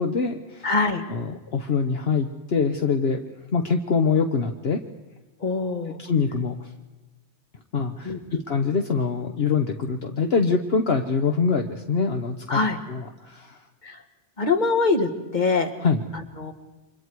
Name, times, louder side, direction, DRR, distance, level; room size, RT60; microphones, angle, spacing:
voice 1, 0.0-0.7 1.1-3.2 3.5-4.8 6.1-6.7 7.7-8.1 8.5-12.6 12.9-13.6 15.8-16.0, left 5 dB, 65° left, 5 dB, 1.3 m, -24 dB
voice 2, 0.6-1.0 5.4-6.0 8.0-8.2 12.5-12.8 13.8-14.0 14.4-15.7 16.1-16.5, left 3 dB, 40° left, 5 dB, 2.0 m, -23 dB
29.5 x 25.5 x 4.7 m, 1.1 s
omnidirectional pair, 1.1 m